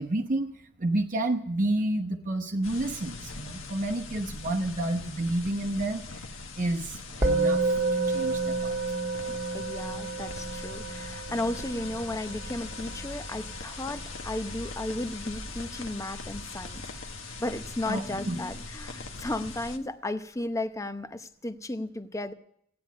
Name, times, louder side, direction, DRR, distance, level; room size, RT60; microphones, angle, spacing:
voice 1, 0.0-6.3 6.6-8.8 17.9-18.4, right 1 dB, 40° right, 2 dB, 0.9 m, -30 dB
sound 1, 2.6-19.8, left 3 dB, 65° left, 1.4 m, -41 dB
Musical instrument, 7.2-16.7, right 3 dB, 15° right, 1.8 m, -31 dB
voice 2, 9.3-17.1 17.4-22.3, left 2 dB, 15° left, 11 dB, 0.8 m, -34 dB
15.5 x 9.6 x 9.4 m, 0.69 s
head